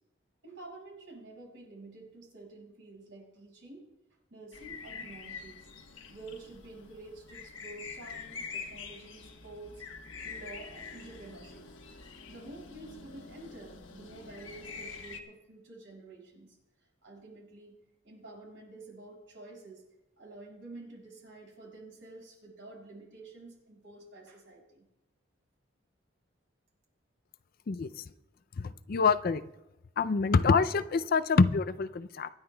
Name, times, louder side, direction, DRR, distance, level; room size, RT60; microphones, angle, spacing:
voice 1, 0.4-3.9 4.3-5.7 6.1-9.8 10.2-11.6 12.3-16.6 17.0-17.8 18.0-19.8 20.2-24.8, right 2 dB, 75° right, -2 dB, 5.7 m, -49 dB
sound 1, 4.5-15.2, left 5 dB, 80° left, 1.3 m, -45 dB
voice 2, 28.6-29.4 30.0-32.3, left 4 dB, 50° left, 12 dB, 0.4 m, -26 dB
25.5 x 10.5 x 2.3 m, 0.92 s
head